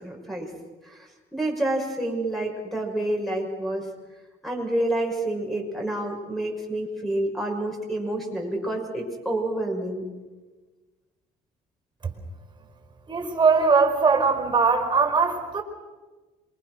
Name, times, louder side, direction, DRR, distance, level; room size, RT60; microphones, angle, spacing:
voice 1, 0.0-0.5 0.9-1.0 1.3-3.8 4.4-10.0, right 1 dB, ahead, 1 dB, 6.5 m, -28 dB
voice 2, 13.1-15.6, right 4 dB, 25° right, 6 dB, 4.7 m, -20 dB
27.0 x 23.5 x 6.4 m, 1.3 s
cardioid pair, 110°, 17 cm